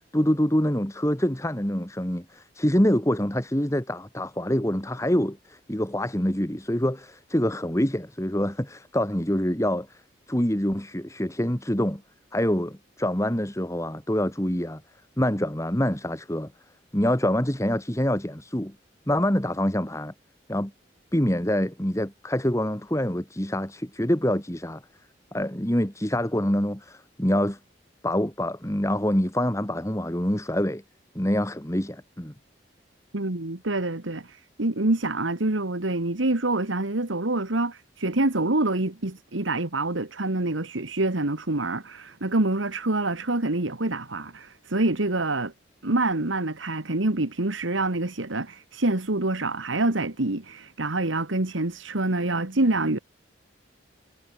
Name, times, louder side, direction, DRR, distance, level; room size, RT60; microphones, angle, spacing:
voice 1, 0.1-10.0 10.3-12.0 12.3-14.8 15.2-16.5 16.9-18.7 19.1-20.1 20.5-20.7 21.1-24.8 25.3-27.6 28.0-30.8 31.2-32.3, equal, 15° left, 2.1 m, -25 dB
voice 2, 33.1-45.5 45.8-53.0, right 2 dB, 90° right, 1.9 m, -26 dB
head